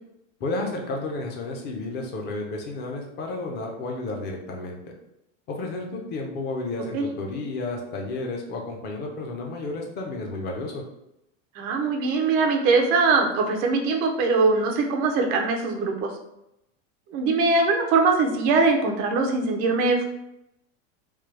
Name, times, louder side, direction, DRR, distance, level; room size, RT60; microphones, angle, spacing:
voice 1, 0.4-5.0 5.5-10.8, left 2 dB, 25° left, 1 dB, 0.6 m, -32 dB
voice 2, 11.6-16.1 17.1-20.0, right 3 dB, 25° right, 2 dB, 0.3 m, -22 dB
3.2 x 2.2 x 3.1 m, 0.84 s
supercardioid pair, 145°, 38 cm